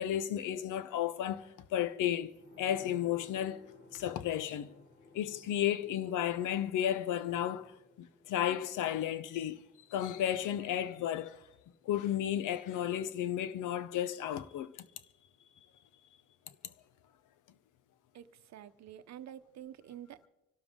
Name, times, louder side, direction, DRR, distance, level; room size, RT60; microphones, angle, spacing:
voice 1, 0.0-3.6 3.9-4.7 5.1-7.7 8.0-9.6 9.9-11.4 11.8-14.8, left 11 dB, 85° left, 0.8 m, -33 dB
sound 1, 2.3-11.6 11.9-12.0, left 3 dB, 35° left, 3.3 m, -59 dB
voice 2, 18.1-20.3, right 11 dB, 65° right, 0.9 m, -49 dB
25.5 x 12.5 x 3.7 m
cardioid pair, 90°, 30 cm